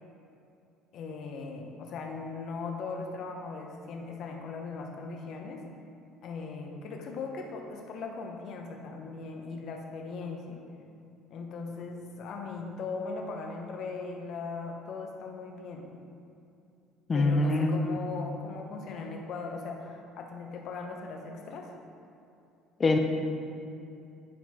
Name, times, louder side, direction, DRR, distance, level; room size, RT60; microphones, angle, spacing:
voice 1, 0.9-5.7 6.2-10.6 11.3-15.8 17.1-21.7, left 4 dB, 50° left, 2 dB, 0.9 m, -39 dB
voice 2, 17.1-17.8 22.8-23.0, left 2 dB, 25° left, 3 dB, 0.4 m, -24 dB
9.7 x 4.5 x 3.6 m, 2.7 s
cardioid pair, 140°, 0 cm